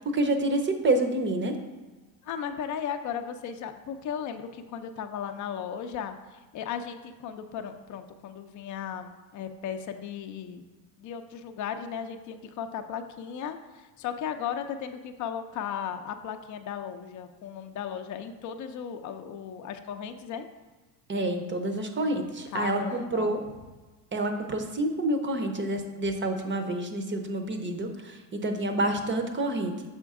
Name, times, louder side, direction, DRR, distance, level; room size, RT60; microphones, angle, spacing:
voice 1, 0.0-1.5 21.1-23.4 24.1-29.7, right 2 dB, 25° right, 6 dB, 0.7 m, -28 dB
voice 2, 2.2-6.2 6.5-10.6 11.0-20.5 22.5-23.4, left 8 dB, 35° left, 7 dB, 0.6 m, -36 dB
6.8 x 4.4 x 3.6 m, 1.2 s
supercardioid pair, 95°, 50 cm